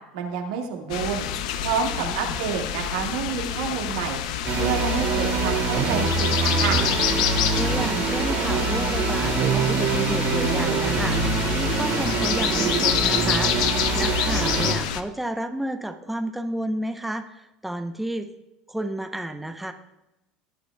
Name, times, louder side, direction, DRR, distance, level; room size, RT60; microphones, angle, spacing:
voice 1, 0.1-1.2 1.6-4.2 4.6-6.8, right 6 dB, 80° right, 1 dB, 2.1 m, -28 dB
sound 1, 0.9-15.0, left 10 dB, 75° left, 0.7 m, -28 dB
voice 2, 2.0-2.3 7.5-13.5 13.9-18.3 18.7-19.7, right 1 dB, 5° right, 6 dB, 0.8 m, -31 dB
sound 2, 4.4-14.7, right 4 dB, 60° right, 2.7 m, -24 dB
19.0 x 9.1 x 2.3 m, 0.95 s
hypercardioid pair, 85°, 4 cm